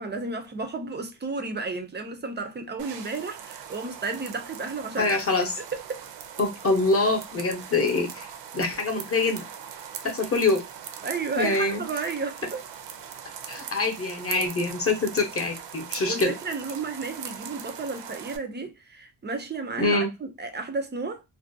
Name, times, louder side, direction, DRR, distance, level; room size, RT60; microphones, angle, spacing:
voice 1, 0.0-5.1 5.6-6.0 10.1-10.2 11.0-12.6 16.1-21.2, right 4 dB, 25° right, 0.4 m, -32 dB
sound 1, 2.8-18.4, right 8 dB, 80° right, 0.5 m, -41 dB
voice 2, 5.0-5.6 6.4-8.3 8.5-9.4 10.0-10.6 11.4-11.8 13.5-16.3 19.8-20.1, left 3 dB, 30° left, 0.6 m, -25 dB
2.4 x 2.2 x 2.5 m
wide cardioid pair, 130°, 43 cm